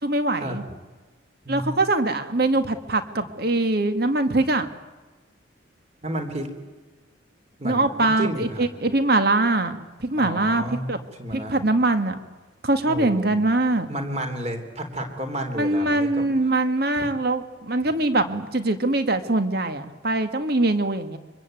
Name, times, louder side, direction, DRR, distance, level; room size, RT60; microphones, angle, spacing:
voice 1, 0.0-0.6 1.5-4.7 7.6-10.6 10.9-11.0 11.3-12.2 12.6-13.9 15.6-21.2, right 2 dB, 50° right, 9 dB, 1.9 m, -22 dB
voice 2, 1.4-1.8 3.2-3.3 6.0-6.5 7.6-8.7 10.1-10.9 11.2-11.6 12.9-13.3 13.9-16.5 16.9-17.1, right 1 dB, 35° right, 5 dB, 3.7 m, -32 dB
25.0 x 24.5 x 9.2 m, 1.2 s
head